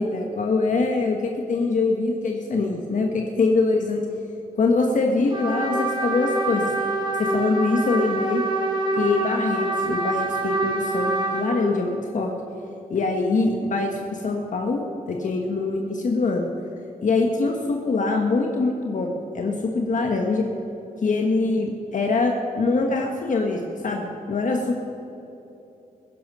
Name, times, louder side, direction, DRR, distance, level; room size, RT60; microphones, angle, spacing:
voice 1, 0.0-4.0 4.6-6.7 7.2-8.4 9.0-12.3 12.9-16.5 17.0-20.4 21.0-24.7, left 3 dB, 55° left, 2 dB, 1.3 m, -23 dB
Trumpet, 5.3-11.5, right 2 dB, 30° right, 3.8 m, -26 dB
21.0 x 11.0 x 5.5 m, 3.0 s
wide cardioid pair, 135°, 15 cm